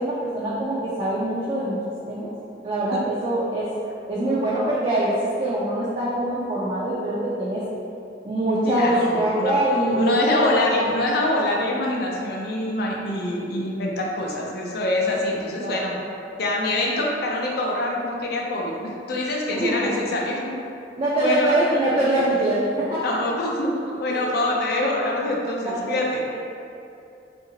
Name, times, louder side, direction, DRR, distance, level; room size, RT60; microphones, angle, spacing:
voice 1, 0.0-1.8 2.1-2.3 2.6-3.7 4.1-7.6 8.2-10.9 15.6-15.9 19.5-19.9 21.0-23.2 24.1-24.2 25.7-25.9, right 1 dB, 30° right, -7 dB, 0.3 m, -24 dB
voice 2, 8.6-9.6 9.9-16.0 16.4-20.5 21.1-21.5 23.0-26.2, left 1 dB, 60° left, -2 dB, 0.5 m, -25 dB
2.8 x 2.5 x 2.7 m, 2.6 s
head